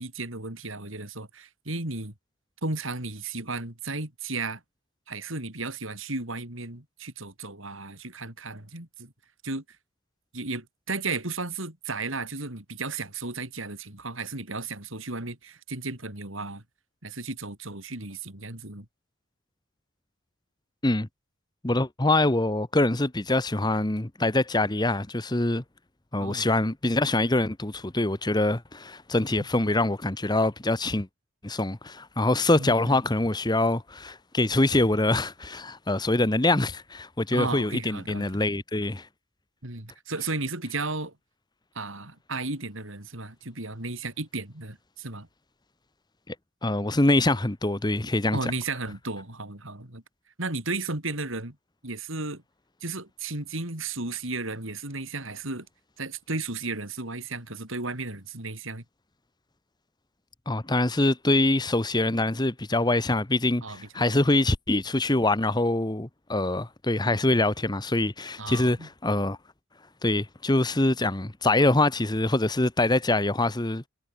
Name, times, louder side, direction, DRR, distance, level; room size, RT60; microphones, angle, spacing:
voice 1, 0.0-2.1 2.6-4.6 5.1-9.1 9.4-9.6 10.3-16.6 17.0-18.9 26.2-26.5 32.6-33.0 37.3-38.3 39.6-41.1 41.7-45.3 48.3-50.0 50.4-51.6 51.8-52.4 52.8-55.7 56.0-58.8 63.6-64.3 68.4-68.9, right 3 dB, 70° right, 4.4 m, -34 dB
voice 2, 21.6-25.6 26.1-31.1 31.4-39.1 46.3-46.4 46.6-48.4 60.5-69.4 70.0-73.8, left 2 dB, 20° left, 1.1 m, -24 dB
head